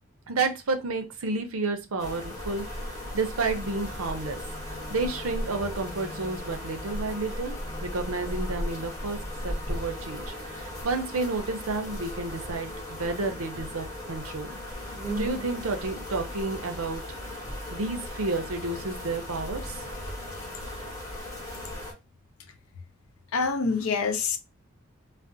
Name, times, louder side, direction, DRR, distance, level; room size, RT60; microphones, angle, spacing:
voice 1, 0.3-4.4 4.7-7.6 7.8-9.2 9.4-14.6 14.8-17.0 17.7-19.8, right 3 dB, 90° right, 0.7 m, -31 dB
sound 1, 2.0-21.9, left 1 dB, 15° left, 0.8 m, -36 dB
voice 2, 23.3-24.4, left 4 dB, 90° left, 0.6 m, -26 dB
2.5 x 2.0 x 3.8 m
head